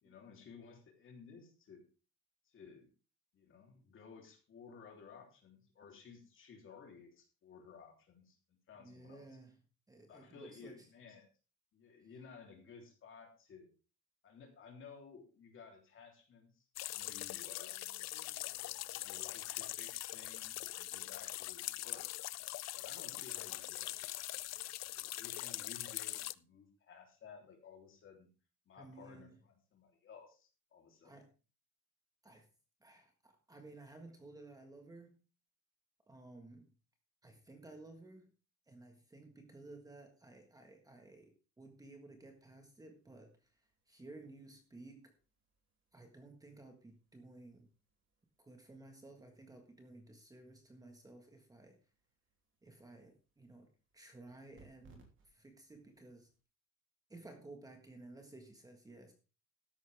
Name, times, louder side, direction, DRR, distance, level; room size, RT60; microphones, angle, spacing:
voice 1, 0.0-1.8 2.4-2.9 3.3-8.4 8.7-9.3 10.1-11.3 11.7-13.7 14.2-17.8 18.9-22.2 22.7-24.2 25.0-28.3 28.7-31.1, left 5 dB, 40° left, 3 dB, 3.2 m, -56 dB
voice 2, 8.8-9.6 9.9-10.9 28.8-29.4 31.0-31.3 32.2-32.5 32.8-35.2 36.1-36.7 37.2-38.3 38.7-45.1 45.9-47.7 48.4-51.8 52.6-56.3 57.1-59.1, right 2 dB, 10° right, 4 dB, 1.5 m, -55 dB
sound 1, 16.8-26.3, left 16 dB, 60° left, 0.5 m, -42 dB
sound 2, 42.2-56.4, right 4 dB, 40° right, 3.1 m, -71 dB
13.0 x 10.5 x 3.5 m, 0.33 s
cardioid pair, 180°, 30 cm